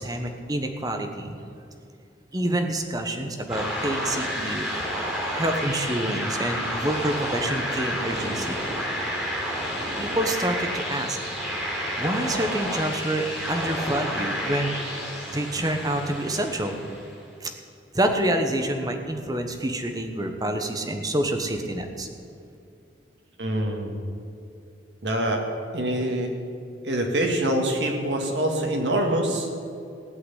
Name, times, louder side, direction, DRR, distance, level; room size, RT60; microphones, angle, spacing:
voice 1, 0.0-1.4 2.3-4.7 5.3-8.6 10.0-11.2 12.0-14.7 15.3-16.8 17.4-17.5 17.9-22.1, right 1 dB, 20° right, 5 dB, 1.1 m, -27 dB
sound 1, 3.5-17.2, equal, 5° right, 3.5 m, -30 dB
voice 2, 23.4-23.9 25.0-25.4 25.7-26.3 26.8-29.5, right 1 dB, 70° right, 2 dB, 2.0 m, -25 dB
16.0 x 5.9 x 9.9 m, 2.5 s
head